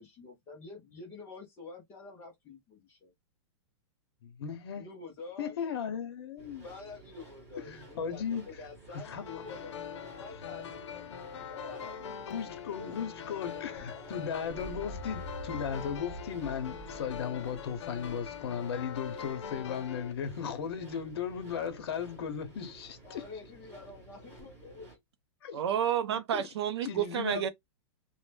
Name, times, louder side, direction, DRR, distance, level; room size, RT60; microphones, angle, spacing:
voice 1, 0.0-3.1 4.8-5.5 6.6-14.1 23.0-24.9, left 4 dB, 15° left, 0.5 m, -48 dB
voice 2, 4.2-4.9 5.4-6.7 7.6-8.4 8.9-9.2 12.3-23.2 25.4-25.6 26.3-26.5 26.8-27.5, left 7 dB, 60° left, 0.9 m, -36 dB
sound 1, 6.4-25.0, right 2 dB, 15° right, 1.2 m, -53 dB
sound 2, 9.0-20.1, left 8 dB, 90° left, 0.6 m, -43 dB
sound 3, 13.8-19.7 21.3-21.8 24.4-24.5, right 1 dB, 40° right, 0.8 m, -47 dB
voice 3, 25.5-27.5, right 10 dB, 65° right, 0.5 m, -30 dB
2.6 x 2.1 x 3.2 m
supercardioid pair, 175°, 15 cm